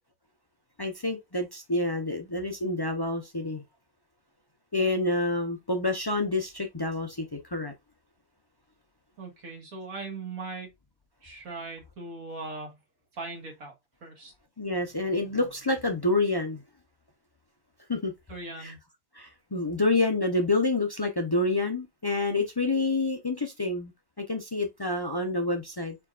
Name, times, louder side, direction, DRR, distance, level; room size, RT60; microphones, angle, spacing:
voice 1, 0.8-3.6 4.7-7.7 14.6-16.6 17.9-18.1 18.6-18.7 19.1-23.9 24.2-26.0, left 2 dB, 35° left, 0.3 m, -28 dB
voice 2, 9.2-10.7 11.2-12.8 13.2-13.7 14.0-14.3 18.3-18.8, right 3 dB, 85° right, 2.1 m, -39 dB
4.5 x 4.5 x 2.4 m
omnidirectional pair, 1.4 m